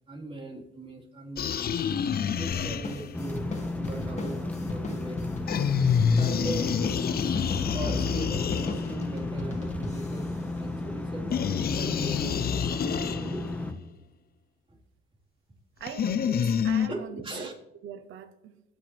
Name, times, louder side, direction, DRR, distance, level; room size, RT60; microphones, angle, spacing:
voice 1, 0.1-1.7 2.4-3.5 3.8-5.2 6.2-6.9 7.7-13.6 14.7-14.8 16.9-17.5, right 2 dB, 30° right, -3 dB, 4.2 m, -39 dB
sound 1, 1.4-3.3 5.5-9.2 11.3-13.6 15.8-16.9, left 7 dB, 50° left, 0.8 m, -28 dB
sound 2, 2.5-11.3, left 2 dB, 35° left, 2.4 m, -38 dB
sound 3, 3.1-13.7, left 2 dB, 5° left, 1.4 m, -34 dB
voice 2, 15.8-17.6 17.8-18.6, right 9 dB, 85° right, 11 dB, 0.9 m, -42 dB
22.5 x 9.2 x 3.4 m, 0.93 s
cardioid pair, 90°, 20 cm